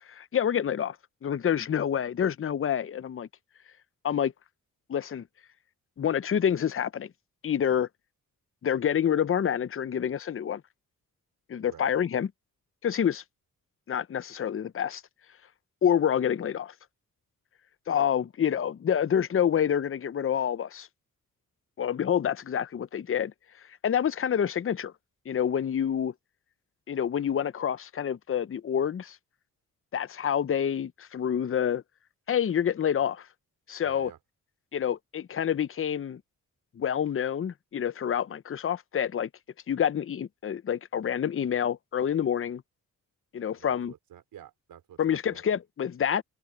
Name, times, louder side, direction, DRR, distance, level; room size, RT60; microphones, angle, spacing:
voice 1, 0.1-1.0 1.2-3.3 4.0-4.3 4.9-5.2 6.0-7.1 7.4-7.9 8.6-10.6 11.5-12.3 12.8-13.2 13.9-15.0 15.8-16.7 17.9-20.9 21.8-23.3 23.8-24.9 25.3-26.1 26.9-29.2 29.9-31.8 32.3-33.3 33.7-34.1 34.7-36.2 36.8-39.3 39.7-42.6 43.3-43.9 45.0-46.2, left 9 dB, 40° left, 0.7 m, -27 dB
voice 2, 11.6-11.9 33.8-34.2 43.5-45.4, right 10 dB, 85° right, 4.5 m, -50 dB
cardioid pair, 65°, 34 cm